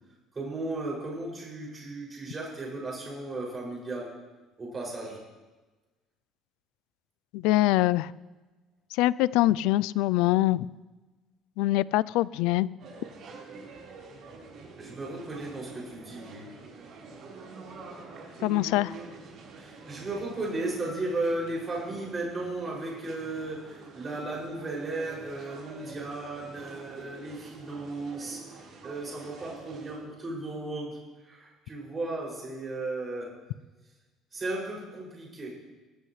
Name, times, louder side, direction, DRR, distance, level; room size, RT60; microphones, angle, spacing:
voice 1, 0.3-4.2 4.6-5.2 14.8-16.5 19.5-28.4 28.8-33.3 34.3-35.5, right 2 dB, 25° right, -4 dB, 6.5 m, -35 dB
voice 2, 7.3-8.1 8.9-10.7 11.6-12.7 18.4-18.9, left 16 dB, 90° left, 20 dB, 0.4 m, -24 dB
sound 1, 12.8-30.0, right 3 dB, 55° right, 4.4 m, -47 dB
23.0 x 13.5 x 3.3 m, 1.2 s
cardioid pair, 145°, 0 cm